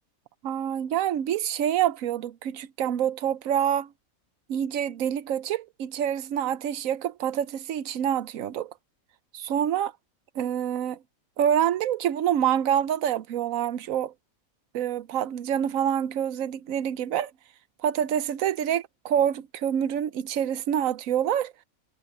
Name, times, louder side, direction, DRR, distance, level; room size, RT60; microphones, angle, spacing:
voice 1, 0.4-3.9 4.5-8.7 9.3-9.9 10.3-11.0 11.4-14.1 14.7-17.3 17.8-21.5, right 10 dB, 75° right, 1.1 m, -26 dB
omnidirectional pair, 1.5 m